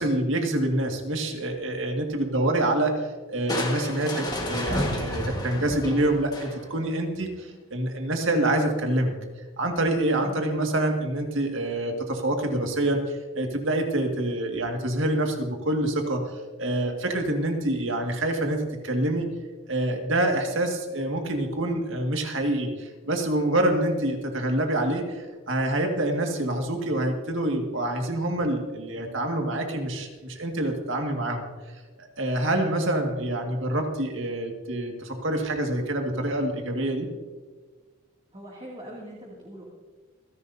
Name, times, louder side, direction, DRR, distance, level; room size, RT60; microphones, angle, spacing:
voice 1, 0.0-9.1 9.6-16.3 16.6-19.3 19.7-31.5 32.0-37.1, right 1 dB, 65° right, 3 dB, 2.0 m, -26 dB
Crushing, 3.5-6.9, left 1 dB, 20° left, 1.5 m, -30 dB
voice 2, 10.2-10.5 38.3-39.7, right 1 dB, 25° right, -4 dB, 2.4 m, -42 dB
27.5 x 11.0 x 2.7 m, 1.3 s
head